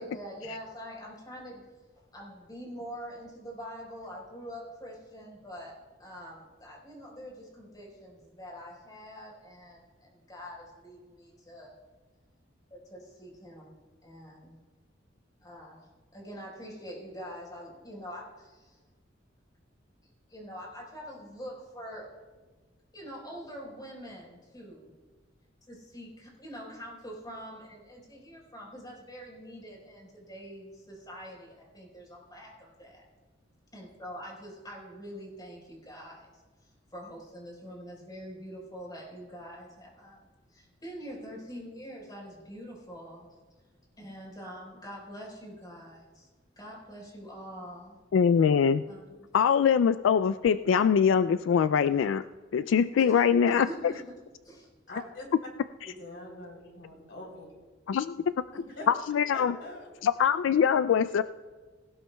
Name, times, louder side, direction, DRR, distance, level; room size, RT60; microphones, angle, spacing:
voice 1, 0.0-1.6 2.1-11.7 12.7-13.7 14.0-14.6 15.4-15.9 16.1-18.8 20.3-22.1 22.9-24.9 25.7-33.0 33.7-43.3 44.0-46.3 46.6-48.0 48.9-49.3 53.0-54.1 54.4-54.6, equal, 20° left, -2 dB, 4.3 m, -45 dB
voice 2, 48.1-48.8 49.3-52.2 52.5-53.7 57.9-58.2 58.9-59.6 60.0-61.2, left 7 dB, 85° left, 12 dB, 0.3 m, -23 dB
voice 3, 54.9-55.2 55.8-57.5 58.5-58.9 59.3-59.9, left 1 dB, 65° left, 0 dB, 3.4 m, -43 dB
19.0 x 18.0 x 2.3 m, 1.4 s
head